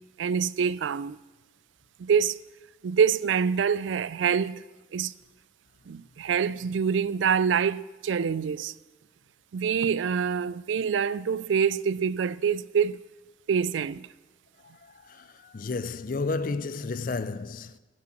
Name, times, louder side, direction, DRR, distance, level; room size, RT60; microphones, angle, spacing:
voice 1, 0.2-1.2 2.0-2.4 2.8-4.6 4.9-5.1 5.9-8.7 9.5-13.0 13.5-14.1, right 7 dB, 80° right, 0.4 m, -26 dB
voice 2, 14.8-17.8, left 3 dB, 45° left, 0.4 m, -32 dB
15.5 x 7.6 x 5.9 m
head